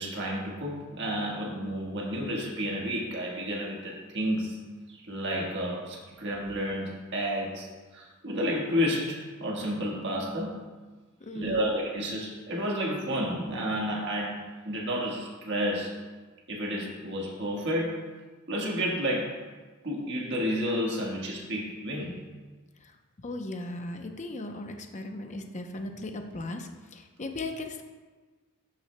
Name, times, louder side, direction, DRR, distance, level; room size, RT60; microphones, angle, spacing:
voice 1, 0.0-10.6 11.3-15.9 16.5-18.0 18.5-19.4 19.8-22.2, equal, 55° right, -3 dB, 1.4 m, -31 dB
voice 2, 11.2-11.7 22.8-22.9 23.2-27.8, left 2 dB, 35° left, 4 dB, 0.7 m, -37 dB
12.5 x 6.1 x 2.2 m, 1.3 s
head